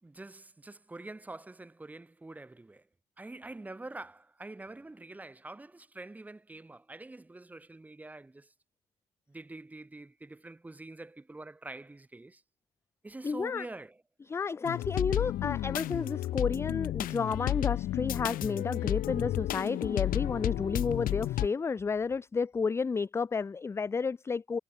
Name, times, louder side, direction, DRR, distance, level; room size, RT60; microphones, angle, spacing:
voice 1, 0.0-2.8 3.2-8.5 9.3-12.4 13.0-14.0, right 2 dB, 10° right, 5.5 m, -46 dB
voice 2, 13.2-13.7 14.3-24.6, left 5 dB, 15° left, 0.5 m, -31 dB
sound 1, 14.6-21.5, left 14 dB, 60° left, 1.3 m, -32 dB
cardioid pair, 175°, 16 cm